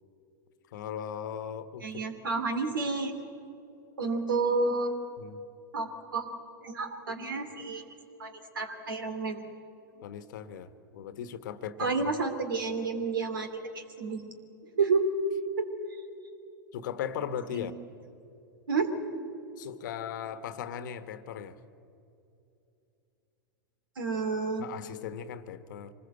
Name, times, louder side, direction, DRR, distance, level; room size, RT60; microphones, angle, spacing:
voice 1, 0.7-1.9 5.2-5.4 10.0-12.1 16.7-17.7 19.6-21.6 24.6-25.9, left 8 dB, 60° left, 12 dB, 1.3 m, -38 dB
voice 2, 1.8-3.2 4.0-4.9 5.7-6.3 6.6-7.9 8.2-9.5 11.8-14.2 14.6-15.1 15.6-16.0 17.5-17.7 18.7-18.9 24.0-24.7, right 4 dB, 80° right, 7 dB, 2.9 m, -30 dB
25.0 x 19.5 x 8.0 m, 2.8 s
hypercardioid pair, 100°, 11 cm